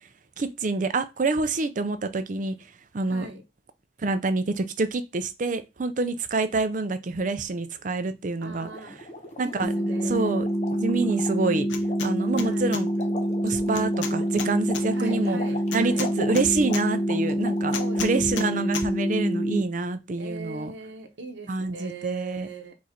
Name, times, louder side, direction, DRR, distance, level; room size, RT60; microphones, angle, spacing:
voice 1, 0.4-2.5 2.9-3.3 4.0-8.7 9.4-9.7 10.1-11.7 12.0-12.9 13.4-15.4 15.7-20.7 21.5-22.5, right 3 dB, 40° right, 0.5 m, -27 dB
voice 2, 3.1-3.4 8.4-9.0 9.4-10.3 12.4-12.8 14.9-16.1 16.4-16.6 17.8-18.7 20.2-22.7, right 3 dB, 75° right, 1.0 m, -40 dB
sound 1, 8.5-18.1, left 3 dB, 35° left, 1.0 m, -40 dB
sound 2, 9.6-19.6, equal, 15° left, 0.5 m, -26 dB
sound 3, 11.7-12.1 12.4-12.8 13.7-14.8 15.7-16.8 17.7-18.5 18.7-18.9, left 5 dB, 75° left, 0.7 m, -33 dB
4.6 x 2.6 x 4.2 m
head